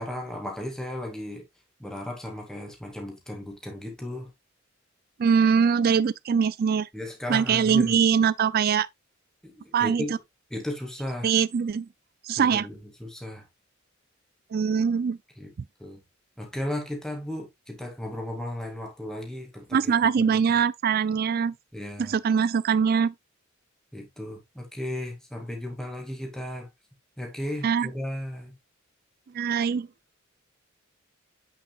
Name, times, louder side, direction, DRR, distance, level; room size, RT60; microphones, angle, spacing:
voice 1, 0.0-1.4 1.8-4.3 6.9-7.9 9.4-10.1 10.5-11.3 12.4-13.4 15.4-15.5 15.8-16.0 16.4-20.3 21.7-22.2 23.9-26.7 27.2-28.5, left 1 dB, 5° left, 2.1 m, -35 dB
voice 2, 5.2-6.9 7.3-8.9 9.7-10.0 11.2-11.9 12.3-12.7 14.5-15.2 19.7-21.5 22.0-23.1 27.6-27.9 29.3-29.9, right 6 dB, 50° right, 0.4 m, -22 dB
8.4 x 6.4 x 2.3 m
head